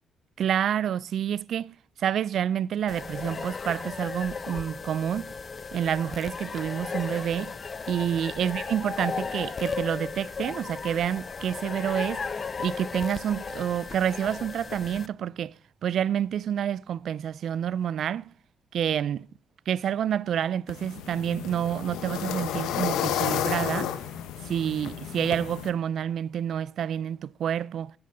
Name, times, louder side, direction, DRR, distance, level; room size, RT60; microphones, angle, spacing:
voice 1, 0.4-5.3 5.7-7.6 7.9-12.3 12.6-15.5 15.8-18.3 18.7-19.3 19.7-24.0 24.4-27.9, right 9 dB, 65° right, 0.3 m, -28 dB
sound 1, 2.9-15.1, left 5 dB, 35° left, 0.4 m, -35 dB
sound 2, 20.7-25.7, left 9 dB, 90° left, 0.9 m, -31 dB
9.7 x 8.6 x 3.8 m
cardioid pair, 90°, 0 cm